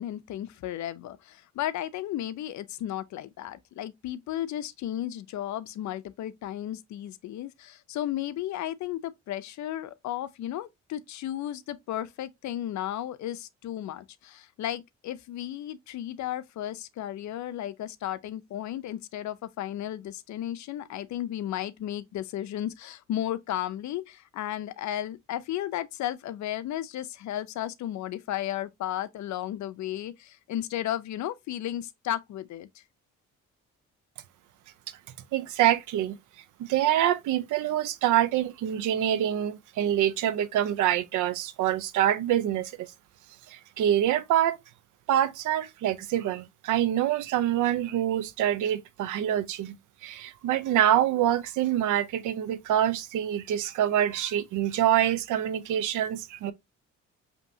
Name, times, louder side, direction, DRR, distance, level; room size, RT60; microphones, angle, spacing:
voice 1, 0.0-32.8, left 12 dB, 70° left, 0.6 m, -34 dB
voice 2, 35.3-36.1 36.6-42.9 43.5-44.6 45.1-49.8 50.0-56.5, right 11 dB, 85° right, 0.6 m, -26 dB
5.2 x 2.9 x 2.6 m
cardioid pair, 90°, 30 cm